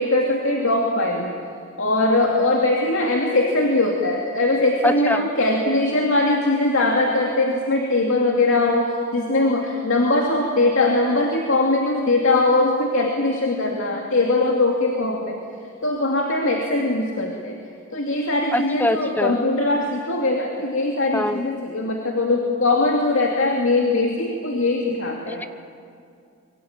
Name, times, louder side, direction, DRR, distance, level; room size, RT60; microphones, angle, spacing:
voice 1, 0.0-1.3 1.8-15.4 15.8-17.6 17.9-25.4, left 2 dB, 70° left, 0 dB, 2.6 m, -21 dB
voice 2, 4.8-5.3 18.5-19.4 21.1-21.4 25.3-25.5, left 1 dB, 10° left, 10 dB, 0.9 m, -23 dB
25.5 x 23.0 x 9.0 m, 2.4 s
head